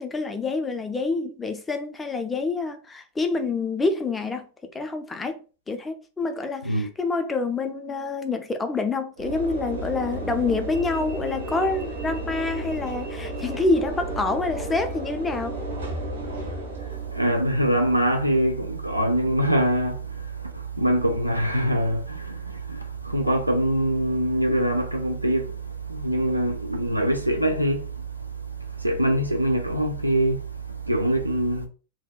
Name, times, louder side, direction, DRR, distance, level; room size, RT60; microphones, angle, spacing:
voice 1, 0.0-15.6, left 3 dB, 15° left, 0.4 m, -27 dB
Train / Engine / Alarm, 9.2-17.4, right 2 dB, 70° right, 1.0 m, -33 dB
voice 2, 16.8-31.7, right 1 dB, 85° right, 0.3 m, -24 dB
2.7 x 2.1 x 2.2 m
figure-of-eight pair, 90°, 0 cm